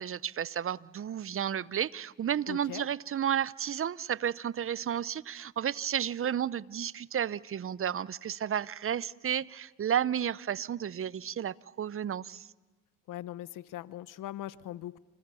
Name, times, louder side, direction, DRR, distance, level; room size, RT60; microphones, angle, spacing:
voice 1, 0.0-12.5, right 9 dB, 40° right, 20 dB, 0.8 m, -32 dB
voice 2, 2.5-2.9 13.1-15.0, left 13 dB, 70° left, 17 dB, 1.0 m, -40 dB
29.0 x 28.0 x 7.0 m, 1.3 s
supercardioid pair, 60°, 33 cm